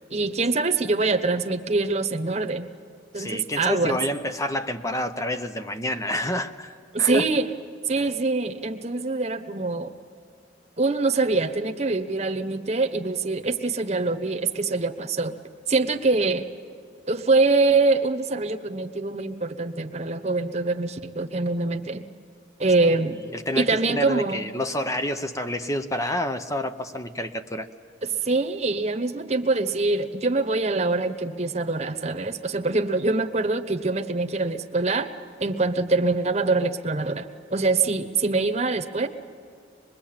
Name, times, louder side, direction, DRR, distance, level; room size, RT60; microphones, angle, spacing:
voice 1, 0.1-2.7 3.1-4.0 6.9-7.5 7.9-9.9 10.8-15.3 15.7-16.4 17.1-22.1 22.6-23.2 23.5-24.4 28.0-35.1 35.4-39.1, right 3 dB, 35° right, 6 dB, 1.1 m, -24 dB
voice 2, 3.2-7.2 8.0-8.1 23.3-27.7, left 1 dB, 15° left, 8 dB, 0.7 m, -28 dB
24.5 x 21.5 x 8.9 m, 2.3 s
head